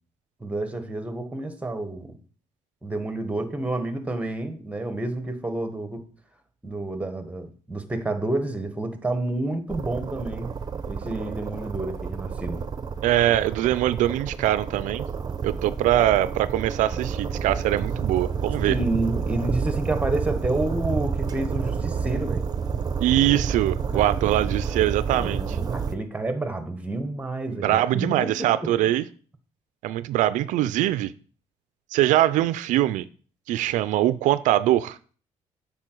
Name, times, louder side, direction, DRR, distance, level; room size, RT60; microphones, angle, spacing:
voice 1, 0.4-2.2 2.8-6.0 6.6-10.5 10.9-12.7 18.6-22.5 23.9-24.4 25.2-28.7, right 2 dB, 10° right, 1.3 m, -29 dB
sound 1, 9.7-25.9, right 6 dB, 30° right, 0.7 m, -29 dB
voice 2, 13.0-15.0 15.4-18.7 23.0-25.6 27.6-29.0 29.8-31.1 31.9-33.1 33.5-35.1, right 13 dB, 85° right, 0.4 m, -22 dB
8.4 x 5.5 x 4.5 m
cardioid pair, 105°, 13 cm